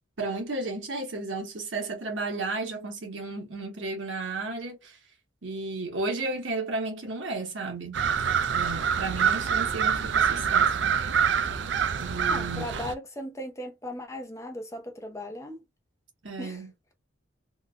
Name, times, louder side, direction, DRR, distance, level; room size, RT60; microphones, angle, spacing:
voice 1, 0.2-5.0 5.4-8.0 8.5-10.9 12.0-12.7 16.2-16.7, right 3 dB, 85° right, 1.4 m, -33 dB
sound 1, 7.9-12.9, right 7 dB, 65° right, 0.4 m, -25 dB
voice 2, 12.2-15.6 16.4-16.6, left 1 dB, 15° left, 0.8 m, -37 dB
3.5 x 2.5 x 2.3 m
head